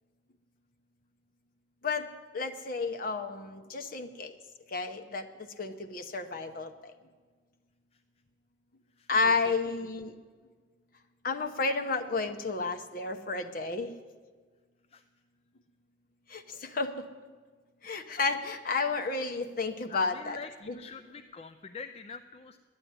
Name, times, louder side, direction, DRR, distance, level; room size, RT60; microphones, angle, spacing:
voice 1, 2.3-4.3 4.7-5.3 5.6-6.9 9.1-10.1 11.2-13.9 16.3-16.9 17.8-20.4 20.7-20.8, left 4 dB, 50° left, 6 dB, 0.9 m, -31 dB
voice 2, 9.0-9.5 14.9-15.0 19.9-22.6, left 5 dB, 35° left, 8 dB, 0.4 m, -45 dB
11.0 x 8.9 x 9.5 m, 1.5 s
head